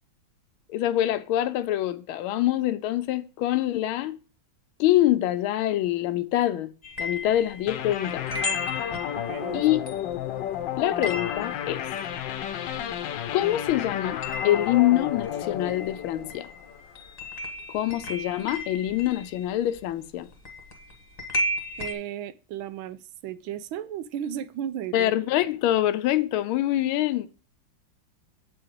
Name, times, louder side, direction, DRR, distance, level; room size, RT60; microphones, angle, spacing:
voice 1, 0.7-4.2 4.8-6.7 7.0-8.3 9.5-9.8 10.8-11.9 13.3-16.5 17.7-20.3 24.9-27.3, left 13 dB, 90° left, 1.4 m, -25 dB
sound 1, 6.8-13.4 13.7-21.9, left 2 dB, 25° left, 1.2 m, -35 dB
sound 2, 7.7-17.0, left 10 dB, 70° left, 1.3 m, -32 dB
voice 2, 9.1-9.7 21.8-25.1, right 10 dB, 90° right, 1.4 m, -35 dB
8.2 x 4.8 x 4.7 m
omnidirectional pair, 2.2 m